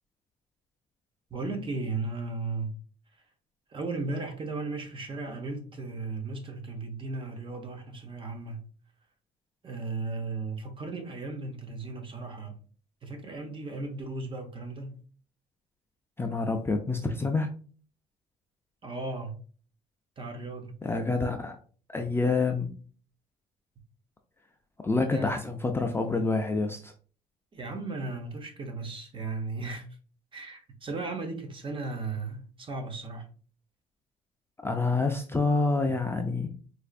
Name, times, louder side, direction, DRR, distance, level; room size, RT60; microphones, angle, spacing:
voice 1, 1.3-2.7 3.7-8.6 9.6-12.6 13.0-15.0 18.8-19.3 20.2-20.8 25.1-25.3 27.5-29.9 30.3-33.3, right 3 dB, 30° right, 0.8 m, -36 dB
voice 2, 16.2-17.5 20.8-21.6 21.9-22.7 24.8-26.9 34.6-36.5, left 3 dB, 15° left, 0.4 m, -27 dB
4.3 x 2.5 x 2.4 m
cardioid pair, 110°, 17 cm